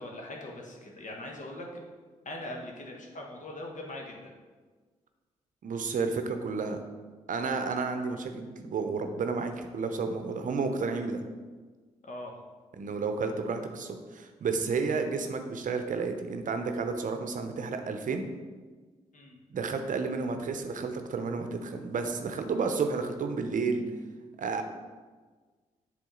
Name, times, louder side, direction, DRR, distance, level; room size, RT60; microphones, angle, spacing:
voice 1, 0.0-1.7 2.2-4.3 12.0-12.4 19.1-19.4, left 1 dB, 55° left, 0 dB, 1.3 m, -41 dB
voice 2, 5.6-6.8 7.3-11.2 12.8-18.3 19.5-23.8 24.4-24.6, right 4 dB, 55° right, 6 dB, 0.7 m, -31 dB
7.5 x 3.6 x 3.8 m, 1.4 s
hypercardioid pair, 40°, 16 cm